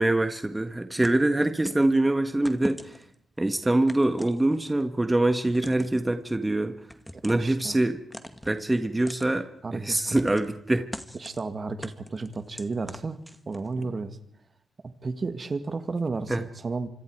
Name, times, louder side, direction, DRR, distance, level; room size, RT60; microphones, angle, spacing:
voice 1, 0.0-3.0 3.4-6.7 7.2-8.0 8.4-10.9 16.3-16.4, right 1 dB, 15° right, 8 dB, 1.6 m, -24 dB
sound 1, 1.0-1.9 2.5-3.2 3.9-4.8 5.5-6.0 6.9-7.5 8.1-8.6 9.1-9.3 10.2-10.6 10.9-11.4 11.8-13.7, equal, ahead, 2.0 m, -40 dB
voice 2, 7.1-7.8 9.6-10.2 11.1-13.2 13.5-14.2 15.0-16.9, right 3 dB, 40° right, 9 dB, 2.0 m, -32 dB
26.5 x 25.5 x 4.8 m, 0.70 s
cardioid pair, 70°, 0 cm